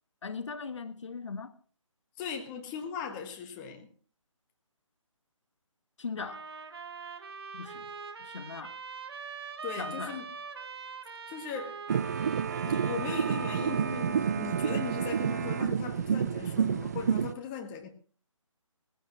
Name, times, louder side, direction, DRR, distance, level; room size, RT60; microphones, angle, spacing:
voice 1, 0.2-1.5 6.0-6.4 7.5-7.9 8.2-8.8 9.8-10.2, left 5 dB, 60° left, 1.6 m, -39 dB
voice 2, 2.2-3.9 9.6-10.3 11.3-11.8 12.5-17.9, left 7 dB, 15° left, 1.4 m, -39 dB
sound 1, 6.2-14.0, right 5 dB, 45° right, 1.3 m, -43 dB
sound 2, 11.9-17.3, right 7 dB, 30° right, 0.5 m, -29 dB
17.5 x 15.5 x 3.0 m
figure-of-eight pair, 150°, 17 cm